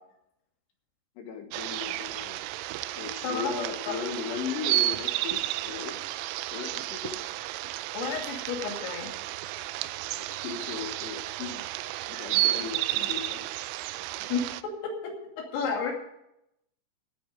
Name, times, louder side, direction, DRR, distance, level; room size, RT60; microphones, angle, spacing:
voice 1, 1.2-2.4 3.0-6.0 6.5-7.2 10.1-11.7 12.1-13.4, left 6 dB, 70° left, 4 dB, 3.2 m, -37 dB
sound 1, 1.5-14.6, right 16 dB, 85° right, 3.2 m, -32 dB
voice 2, 7.9-9.1 14.3-15.9, left 5 dB, 85° left, 0 dB, 5.1 m, -32 dB
17.0 x 9.5 x 5.1 m, 0.81 s
omnidirectional pair, 5.7 m